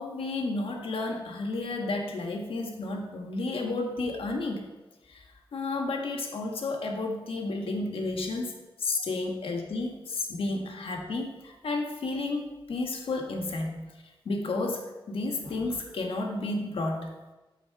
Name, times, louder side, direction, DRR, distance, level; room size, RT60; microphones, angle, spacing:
voice 1, 0.0-4.7 5.1-5.2 5.5-13.9 14.2-17.1, left 2 dB, 90° left, 2 dB, 1.3 m, -32 dB
12.0 x 4.5 x 4.6 m, 1.1 s
wide cardioid pair, 110°, 9 cm